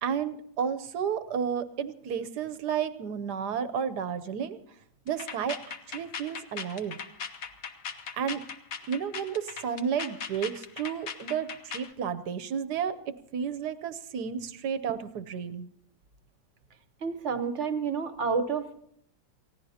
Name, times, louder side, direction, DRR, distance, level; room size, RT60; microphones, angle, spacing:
voice 1, 0.0-4.6 5.1-7.0 8.2-8.4 8.9-15.7, right 7 dB, 65° right, 12 dB, 1.2 m, -32 dB
sound 1, 5.1-11.9, left 6 dB, 55° left, 1.2 m, -39 dB
voice 2, 17.0-18.7, right 5 dB, 45° right, 10 dB, 1.1 m, -29 dB
29.0 x 16.0 x 2.8 m, 0.69 s
omnidirectional pair, 2.1 m